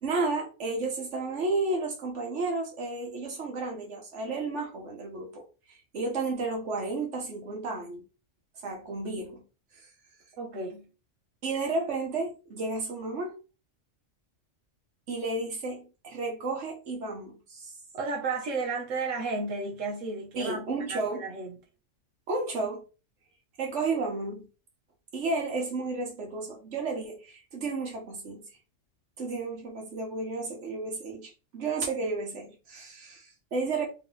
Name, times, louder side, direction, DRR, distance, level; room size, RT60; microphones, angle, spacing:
voice 1, 0.0-8.0 8.6-9.5 11.4-13.4 15.1-17.7 20.4-21.2 22.3-22.8 23.6-24.5 25.1-28.5 29.2-33.9, right 3 dB, 65° right, 1.5 m, -32 dB
voice 2, 10.4-10.9 17.9-21.6, right 3 dB, 90° right, 1.3 m, -33 dB
3.3 x 3.0 x 3.9 m
omnidirectional pair, 1.3 m